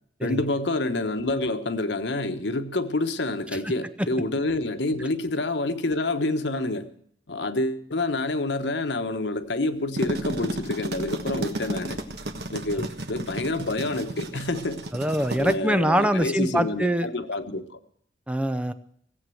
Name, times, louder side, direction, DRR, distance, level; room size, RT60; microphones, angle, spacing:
voice 1, 0.2-6.9 7.3-12.0 12.5-14.8 15.4-17.8, left 2 dB, 90° left, 9 dB, 1.2 m, -28 dB
sound 1, 9.7-15.6, right 1 dB, 70° right, 1.4 m, -33 dB
voice 2, 14.9-17.1 18.3-18.7, equal, 5° right, 11 dB, 0.6 m, -24 dB
17.5 x 8.0 x 7.7 m, 0.66 s
head